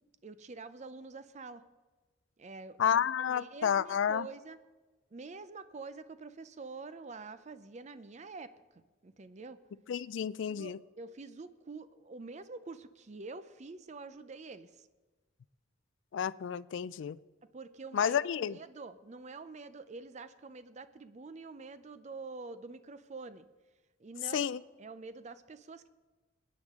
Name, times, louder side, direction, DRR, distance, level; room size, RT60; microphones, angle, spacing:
voice 1, 0.2-1.6 2.4-3.0 3.3-4.6 5.1-9.6 10.5-14.8 17.5-23.5 24.0-24.5 24.8-25.9, right 3 dB, 35° right, 13 dB, 0.5 m, -46 dB
voice 2, 2.8-4.3 9.9-10.8 16.1-17.2 17.9-18.6 24.3-24.6, left 8 dB, 70° left, 19 dB, 0.3 m, -30 dB
21.0 x 9.3 x 3.7 m, 1.2 s
head